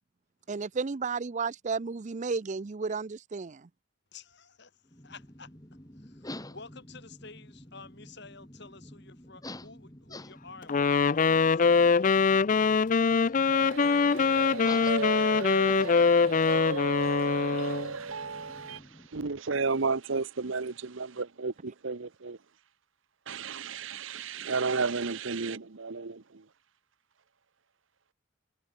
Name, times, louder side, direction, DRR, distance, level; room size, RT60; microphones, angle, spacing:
voice 1, 0.5-3.7, right 4 dB, 35° right, 0.5 m, -33 dB
voice 2, 4.1-12.1, left 4 dB, 55° left, 6.6 m, -51 dB
sound 1, 4.8-19.1, left 1 dB, 20° left, 2.8 m, -49 dB
Wind instrument woodwind instrument, 10.7-17.9, left 5 dB, 40° left, 0.4 m, -23 dB
sound 2, 13.5-18.8, right 4 dB, 85° right, 1.3 m, -35 dB
voice 3, 18.8-22.4 23.3-26.4, right 4 dB, 65° right, 0.9 m, -32 dB
head